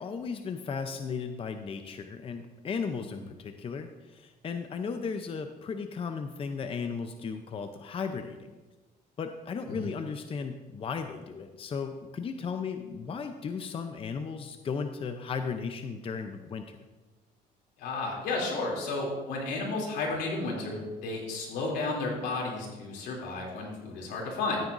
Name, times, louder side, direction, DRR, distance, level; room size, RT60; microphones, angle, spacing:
voice 1, 0.0-8.5 9.2-16.8, left 5 dB, 35° left, 7 dB, 0.6 m, -35 dB
voice 2, 17.8-24.6, left 3 dB, 80° left, -2 dB, 2.9 m, -32 dB
13.5 x 9.1 x 2.6 m, 1.2 s
cardioid pair, 110°, 17 cm